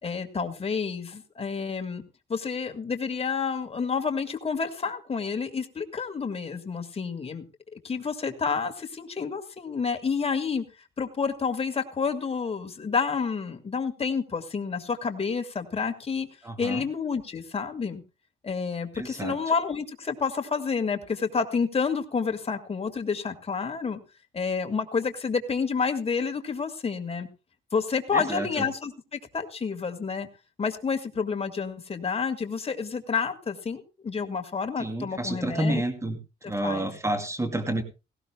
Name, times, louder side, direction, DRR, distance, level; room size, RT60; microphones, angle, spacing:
voice 1, 0.0-2.0 2.3-7.4 7.7-10.6 11.0-16.3 16.6-18.0 18.4-24.0 24.3-27.3 27.7-30.3 30.6-35.8 36.4-36.9, left 5 dB, 30° left, 6 dB, 1.9 m, -29 dB
voice 2, 16.4-16.8 19.0-19.4 28.1-28.7 34.8-36.2 36.4-37.8, right 1 dB, 15° right, 8 dB, 2.6 m, -29 dB
18.0 x 16.5 x 2.2 m, 0.29 s
cardioid pair, 90°, 20 cm